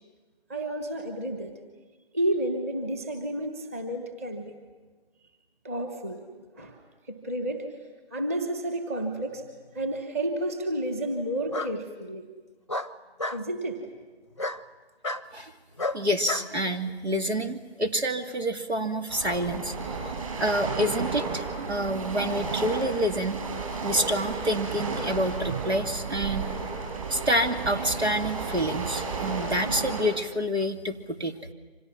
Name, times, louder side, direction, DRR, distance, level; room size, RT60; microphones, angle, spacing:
voice 1, 0.5-1.5 2.1-4.5 5.6-6.2 6.6-6.8 7.1-7.6 8.1-9.4 9.7-12.2 13.3-13.8 29.2-29.4 29.6-29.8, right 1 dB, 15° right, 6 dB, 1.3 m, -31 dB
Bark, 9.3-10.0 11.5-11.7 12.7-13.4 14.4-14.6 15.0-15.2 15.8-16.5, left 2 dB, 25° left, 0.7 m, -31 dB
voice 2, 15.9-19.7 20.4-23.4 23.8-26.5 27.1-31.3, equal, 85° right, 5 dB, 2.7 m, -28 dB
sound 1, 19.1-30.0, right 4 dB, 35° right, 6.9 m, -33 dB
29.5 x 25.5 x 6.2 m, 1.3 s
figure-of-eight pair, 160°, 32 cm